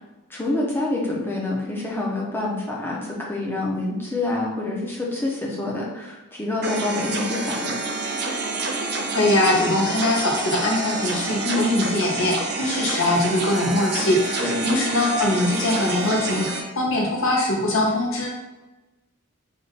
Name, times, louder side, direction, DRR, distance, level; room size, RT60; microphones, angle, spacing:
voice 1, 0.3-7.8 11.4-11.7 14.4-14.6, left 2 dB, 10° left, -4 dB, 0.8 m, -27 dB
sound 1, 6.6-16.6, right 3 dB, 50° right, 0.5 m, -28 dB
voice 2, 8.8-16.5 16.7-18.3, left 1 dB, 65° left, -1 dB, 0.9 m, -22 dB
3.5 x 2.5 x 4.0 m, 1.1 s
head